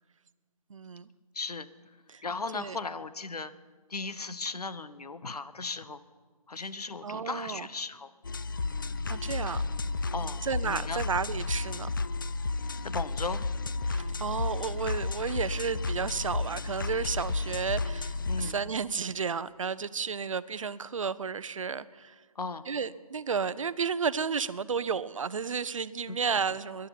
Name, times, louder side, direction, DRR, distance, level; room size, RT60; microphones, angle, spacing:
voice 1, 0.7-1.1 2.1-2.2 2.5-2.8 7.0-7.7 9.1-9.6 10.4-11.9 13.8-22.1 22.7-26.9, right 6 dB, 55° right, 16 dB, 0.6 m, -32 dB
voice 2, 1.3-1.7 2.2-3.5 3.9-6.0 6.5-8.1 10.1-11.0 12.8-13.4 18.3-18.6 22.3-22.7 26.1-26.2, left 4 dB, 80° left, 14 dB, 1.0 m, -36 dB
sound 1, 8.2-18.5, left 3 dB, 35° left, 0.3 m, -32 dB
21.0 x 11.0 x 5.8 m, 1.5 s
figure-of-eight pair, 160°, 20 cm